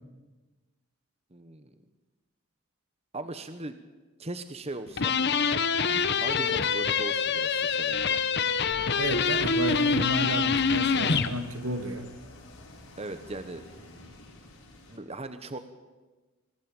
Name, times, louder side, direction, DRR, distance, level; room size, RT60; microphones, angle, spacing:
voice 1, 1.3-1.7 3.1-3.8 4.2-5.1 6.2-8.2 13.0-13.6 14.9-15.6, right 2 dB, 30° right, 10 dB, 1.1 m, -38 dB
sound 1, 5.0-11.3, left 5 dB, 50° left, 1.1 m, -25 dB
sound 2, 8.7-15.0, left 1 dB, 70° left, 6.4 m, -49 dB
voice 2, 9.0-12.1, right 1 dB, 75° right, 9 dB, 1.9 m, -33 dB
23.5 x 15.5 x 8.9 m, 1.2 s
head